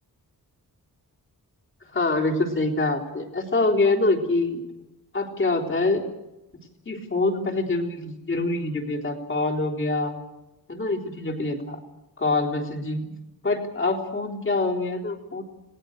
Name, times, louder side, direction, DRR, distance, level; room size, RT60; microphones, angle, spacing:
voice 1, 1.9-4.6 5.1-6.0 6.9-10.1 10.7-11.8 12.2-13.1 13.4-15.4, left 2 dB, 35° left, 0 dB, 3.8 m, -25 dB
30.0 x 19.5 x 6.6 m, 0.99 s
wide cardioid pair, 155°, 37 cm